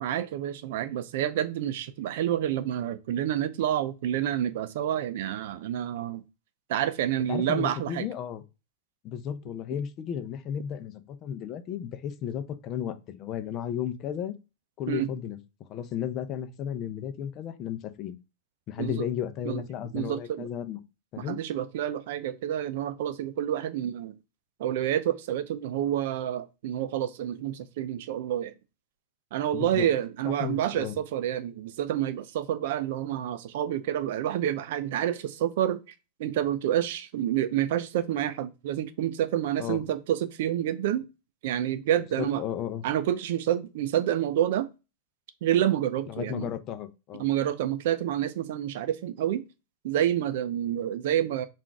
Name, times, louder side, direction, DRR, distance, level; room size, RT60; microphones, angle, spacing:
voice 1, 0.0-6.2 6.7-8.1 14.9-15.1 18.8-19.1 19.5-19.6 19.9-20.5 21.2-24.1 24.6-28.5 29.3-35.8 36.2-41.1 41.4-42.4 42.8-44.7 45.4-46.5 47.2-49.4 49.8-51.5, right 11 dB, 65° right, 0.5 m, -28 dB
voice 2, 7.3-8.4 9.0-14.4 14.8-15.4 15.7-18.2 18.7-20.8 21.1-21.4 29.5-29.9 30.2-30.9 39.6-39.8 42.2-42.8 46.1-47.2, left 9 dB, 40° left, 0.6 m, -34 dB
3.7 x 2.5 x 4.6 m
hypercardioid pair, 120°, 0 cm